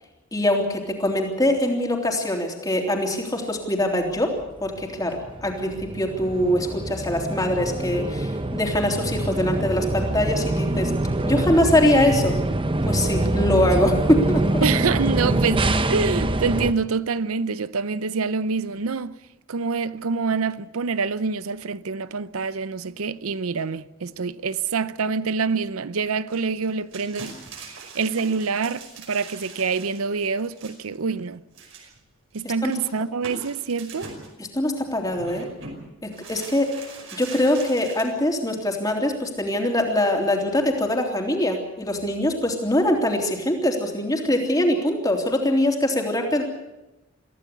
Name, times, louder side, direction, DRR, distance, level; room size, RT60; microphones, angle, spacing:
voice 1, 0.3-10.9 11.2-12.3 12.8-14.6 32.6-32.7 34.5-35.5 36.0-36.7 37.1-46.4, left 1 dB, 15° left, 3.4 m, -23 dB
sound 1, 4.4-16.7, right 1 dB, 25° right, 0.8 m, -25 dB
voice 2, 14.6-19.1 19.5-31.4 32.3-34.1, right 5 dB, 85° right, 0.7 m, -26 dB
sound 2, 26.3-31.0 31.5-32.0 32.3-32.4 32.7-34.3 35.0-35.8 36.1-38.0, right 3 dB, 65° right, 5.4 m, -42 dB
24.0 x 15.5 x 8.3 m
head